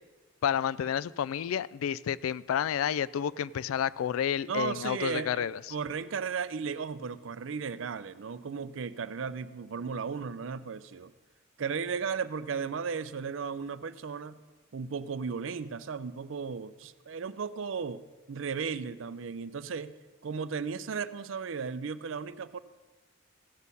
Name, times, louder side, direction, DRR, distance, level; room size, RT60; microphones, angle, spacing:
voice 1, 0.4-5.6, left 9 dB, 80° left, 19 dB, 0.3 m, -30 dB
voice 2, 4.5-11.1 11.6-14.4 14.7-18.0 18.3-19.9 20.2-22.6, right 5 dB, 65° right, 14 dB, 0.5 m, -35 dB
16.0 x 6.3 x 5.4 m, 1.2 s
head